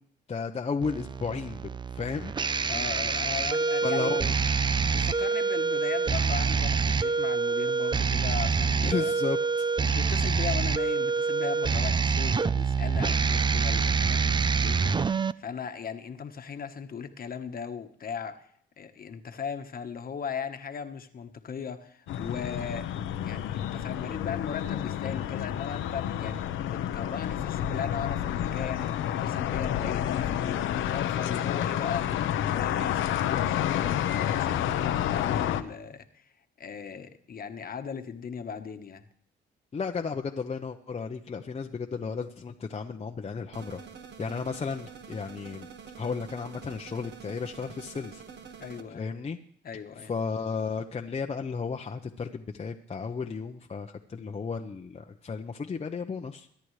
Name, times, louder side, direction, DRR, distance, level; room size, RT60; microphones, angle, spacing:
voice 1, 0.3-1.6 1.9-2.3 3.8-4.3 8.8-9.7 39.7-43.8 44.2-45.7 46.0-48.2 48.9-49.4 50.0-56.5, left 5 dB, 30° left, 3 dB, 0.8 m, -34 dB
sound 1, 0.8-15.3, right 5 dB, 25° right, 0.5 m, -26 dB
voice 2, 2.7-4.2 4.9-9.1 9.8-18.5 18.8-22.9 23.2-36.2 36.6-39.0 48.6-49.1 49.6-50.1, left 6 dB, 45° left, 8 dB, 1.3 m, -38 dB
sound 2, 22.1-35.6, left 10 dB, 85° left, 0.9 m, -29 dB
sound 3, 43.5-48.8, right 6 dB, 60° right, 1.7 m, -46 dB
23.0 x 10.5 x 3.3 m, 0.63 s
cardioid pair, 90°, 20 cm